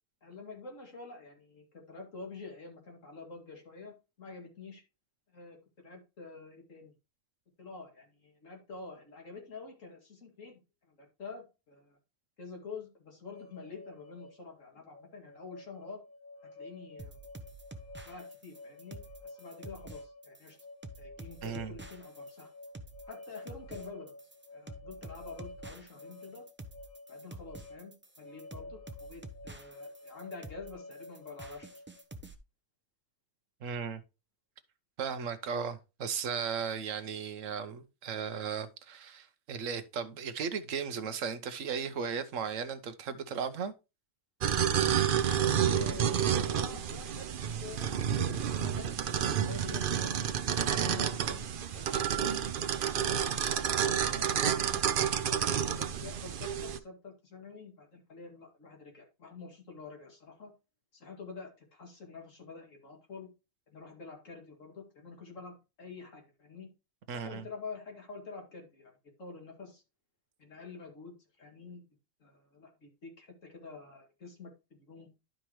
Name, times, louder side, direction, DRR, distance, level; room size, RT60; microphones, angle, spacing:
voice 1, 0.2-4.8 5.3-6.9 7.6-10.6 10.9-12.0 12.4-16.1 16.5-17.2 18.0-20.6 21.0-22.5 23.1-24.1 24.5-26.5 27.1-31.7 45.2-47.3 47.6-50.3 50.7-51.5 51.7-52.4 52.8-53.4 54.0-54.8 55.6-60.5 60.9-63.3 63.7-66.7 67.2-68.9 69.2-69.8 70.4-71.8 72.2-74.5 74.9-75.1, left 4 dB, 70° left, 2.7 m, -47 dB
sound 1, 13.3-32.0, left 2 dB, 85° left, 1.4 m, -51 dB
sound 2, 17.0-32.3, right 2 dB, 10° right, 0.6 m, -48 dB
voice 2, 21.4-21.7 33.6-34.0 35.0-43.7 67.1-67.4, right 6 dB, 70° right, 1.2 m, -36 dB
sound 3, 44.4-56.8, right 8 dB, 55° right, 0.7 m, -30 dB
11.5 x 5.2 x 3.0 m
omnidirectional pair, 1.4 m